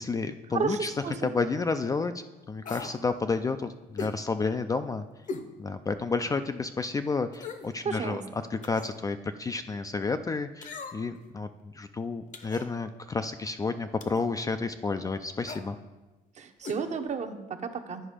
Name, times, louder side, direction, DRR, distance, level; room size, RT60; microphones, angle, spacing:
voice 1, 0.0-0.9 1.2-2.1 2.5-5.0 5.6-8.2 8.6-15.8, left 4 dB, 20° left, 9 dB, 0.3 m, -31 dB
voice 2, 0.5-1.3 7.8-8.2 16.4-18.0, right 5 dB, 45° right, 7 dB, 0.8 m, -32 dB
sound 1, 2.6-3.0 4.0-4.2 5.3-5.5 6.0-6.1 7.3-7.7 8.6-9.0 10.6-11.2 12.3-12.7 14.0-14.3 15.4-15.7 16.6-16.8 17.1-17.2, left 4 dB, 45° left, 0.8 m, -39 dB
10.0 x 4.9 x 5.0 m, 1.1 s
cardioid pair, 110°, 17 cm